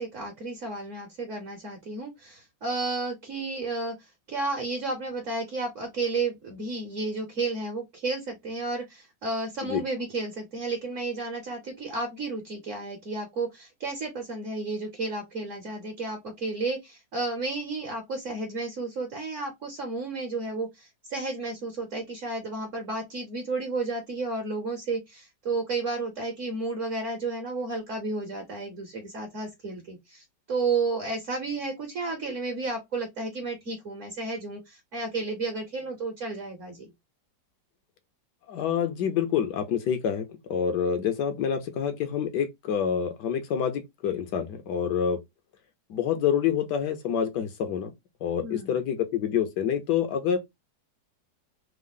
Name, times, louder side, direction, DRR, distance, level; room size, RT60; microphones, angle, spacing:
voice 1, 0.0-36.9 48.4-48.8, right 3 dB, 55° right, 1.0 m, -32 dB
voice 2, 38.5-45.2 45.9-47.9 48.2-50.4, left 8 dB, 75° left, 1.2 m, -27 dB
3.5 x 2.0 x 3.5 m
omnidirectional pair, 1.9 m